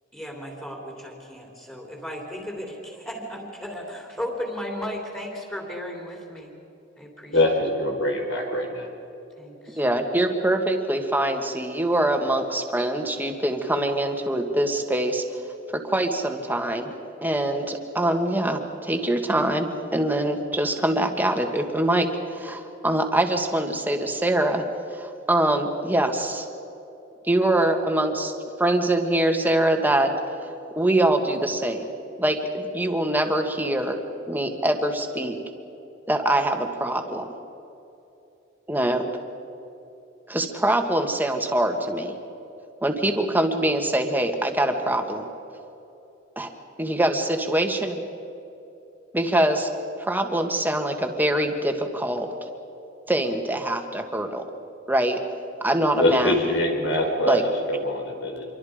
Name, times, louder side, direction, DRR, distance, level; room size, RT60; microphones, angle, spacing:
voice 1, 0.1-6.5 7.0-7.6 9.4-9.8, equal, 10° left, -1 dB, 3.4 m, -35 dB
voice 2, 7.3-8.9 56.0-58.5, left 1 dB, 85° left, 2 dB, 4.6 m, -24 dB
voice 3, 9.7-15.2 15.7-16.9 17.2-24.6 24.9-26.5 27.3-28.3 28.6-30.1 30.8-31.9 32.2-34.0 34.3-35.4 36.1-37.3 38.7-39.0 40.3-42.1 42.8-45.2 46.4-46.5 46.8-48.0 49.1-49.7 50.0-52.3 53.1-54.4 54.9-55.2 55.6-56.3 57.3-57.4, right 1 dB, 10° right, 4 dB, 1.8 m, -24 dB
27.0 x 24.0 x 5.1 m, 2.8 s
head